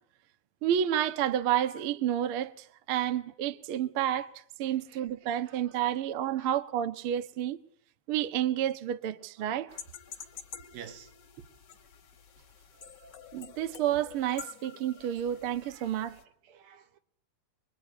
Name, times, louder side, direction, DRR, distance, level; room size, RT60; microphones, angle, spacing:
voice 1, 0.6-4.3 4.6-7.6 8.1-9.7 12.8-16.2, right 11 dB, 55° right, 1.5 m, -30 dB
sound 1, 9.7-16.2, left 8 dB, 45° left, 3.0 m, -49 dB
voice 2, 10.7-11.1 15.1-15.2 15.7-15.9 16.5-17.0, right 9 dB, 80° right, 3.3 m, -48 dB
26.5 x 22.5 x 9.7 m
omnidirectional pair, 4.2 m